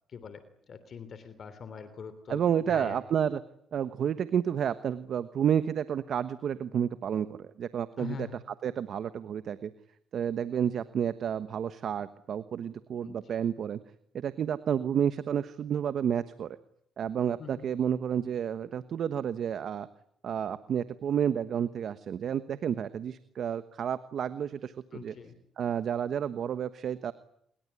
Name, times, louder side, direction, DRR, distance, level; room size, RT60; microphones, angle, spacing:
voice 1, 0.1-0.4 0.7-3.0 8.0-8.4 13.0-13.4 17.4-17.7 24.9-25.3, left 7 dB, 55° left, 12 dB, 3.2 m, -43 dB
voice 2, 2.3-3.4 3.7-8.3 8.6-9.7 10.1-13.8 14.1-16.6 17.0-19.9 20.2-25.1 25.6-27.1, right 8 dB, 60° right, 13 dB, 1.2 m, -30 dB
26.5 x 22.0 x 9.9 m, 0.73 s
cardioid pair, 90°, 0 cm